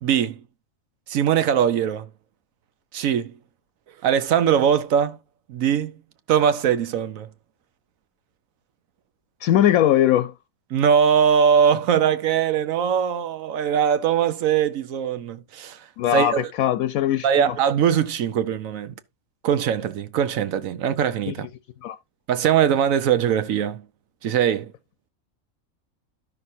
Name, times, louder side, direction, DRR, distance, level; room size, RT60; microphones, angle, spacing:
voice 1, 0.0-0.4 1.1-2.1 2.9-3.3 4.0-5.2 5.5-6.0 6.3-7.3 10.7-15.8 16.1-16.4 17.2-18.9 19.4-21.5 22.3-23.8 24.2-24.7, right 8 dB, 75° right, 1.1 m, -21 dB
voice 2, 9.4-10.3 16.0-17.5 21.3-21.4 21.8-22.0, left 11 dB, 90° left, 1.1 m, -20 dB
12.5 x 6.0 x 2.7 m
omnidirectional pair, 1.4 m